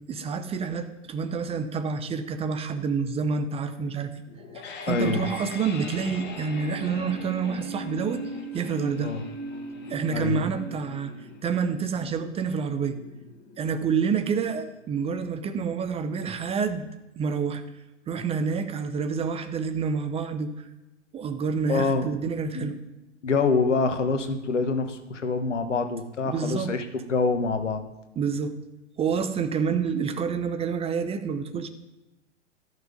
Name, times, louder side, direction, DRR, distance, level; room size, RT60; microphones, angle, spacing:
voice 1, 0.1-4.1 4.5-9.1 9.9-13.0 13.6-16.9 17.2-17.6 18.1-20.5 21.1-22.8 26.2-26.7 28.2-28.5 29.0-31.7, right 6 dB, 15° right, 9 dB, 0.7 m, -28 dB
sound 1, 4.3-15.3, left 1 dB, 30° left, 1.9 m, -40 dB
voice 2, 4.9-5.2 9.0-9.2 10.1-10.4 21.7-22.1 22.5-22.7 23.2-27.8, left 4 dB, 75° left, 8 dB, 1.4 m, -26 dB
13.5 x 6.4 x 5.2 m, 1.0 s
figure-of-eight pair, 105°, 36 cm